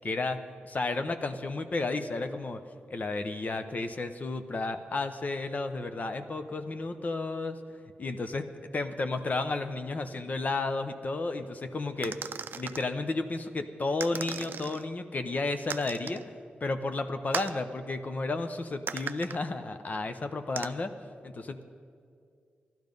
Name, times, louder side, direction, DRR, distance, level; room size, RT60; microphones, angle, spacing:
voice 1, 0.0-2.6 2.9-7.6 8.0-8.4 8.7-12.2 12.5-16.2 16.6-20.9 21.2-21.6, left 3 dB, 45° left, 8 dB, 0.8 m, -32 dB
sound 1, 12.0-12.9 14.0-14.8 15.7-16.2 17.3-17.6 18.9-19.4 20.6-20.7, right 6 dB, 65° right, 0.4 m, -37 dB
15.0 x 12.0 x 5.3 m, 2.3 s
cardioid pair, 65°, 4 cm